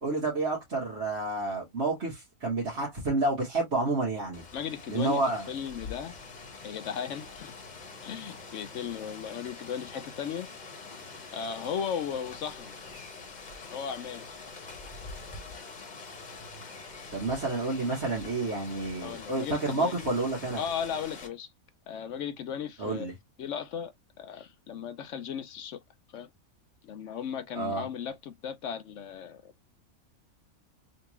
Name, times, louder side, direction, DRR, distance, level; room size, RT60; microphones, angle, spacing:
voice 1, 0.0-4.4 4.9-5.4 17.1-20.6 22.8-23.1 27.5-27.9, right 2 dB, 50° right, 1.6 m, -29 dB
Rain, 4.3-21.3, left 4 dB, 35° left, 0.9 m, -45 dB
voice 2, 4.5-6.1 6.6-7.5 8.0-10.5 11.3-12.7 13.7-14.3 19.0-20.1 20.6-21.5 21.9-23.1 23.4-23.9 24.2-25.8 26.1-26.3 26.8-29.5, left 8 dB, 65° left, 0.8 m, -36 dB
3.5 x 2.9 x 2.9 m
omnidirectional pair, 1.5 m